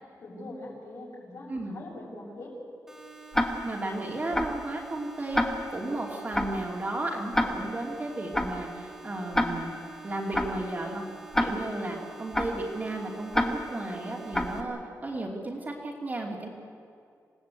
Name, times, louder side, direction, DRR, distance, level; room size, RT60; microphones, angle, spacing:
voice 1, 0.2-2.5, left 2 dB, 60° left, -2 dB, 7.3 m, -42 dB
sound 1, 2.9-14.6, right 4 dB, 5° right, 3.3 m, -48 dB
Tick-tock, 3.3-3.8 4.3-4.7 5.3-5.8 6.3-6.7 7.3-7.8 8.3-8.7 9.3-9.8 10.3-10.7 11.3-11.8 12.3-12.7 13.3-13.8 14.3-14.7, left 1 dB, 10° left, 1.5 m, -28 dB
voice 2, 3.6-5.4 5.7-9.7 10.0-11.0 11.4-16.5, right 2 dB, 30° right, -1 dB, 2.9 m, -34 dB
27.5 x 17.5 x 8.4 m, 2.4 s
wide cardioid pair, 140°, 6 cm